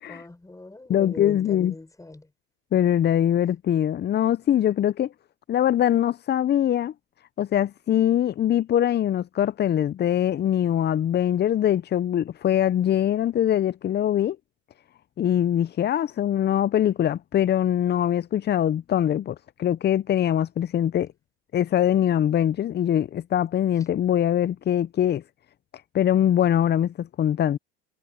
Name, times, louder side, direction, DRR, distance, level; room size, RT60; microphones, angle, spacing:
voice 1, 0.0-2.3, left 2 dB, 10° left, 6.0 m, -40 dB
voice 2, 0.9-1.7 2.7-5.1 5.5-6.9 7.4-14.4 15.2-21.1 21.5-25.2 25.9-27.6, left 10 dB, 30° left, 0.7 m, -22 dB
hypercardioid pair, 85°, 32 cm